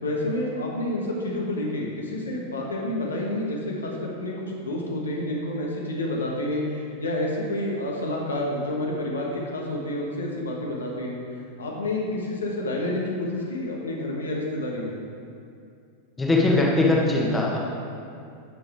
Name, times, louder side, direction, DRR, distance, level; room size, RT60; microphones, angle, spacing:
voice 1, 0.0-11.2 11.6-15.0, left 1 dB, 70° left, -2 dB, 1.3 m, -29 dB
voice 2, 16.2-17.6, left 2 dB, 10° left, -2 dB, 1.3 m, -21 dB
10.5 x 6.8 x 3.6 m, 2.5 s
figure-of-eight pair, 90°, 0 cm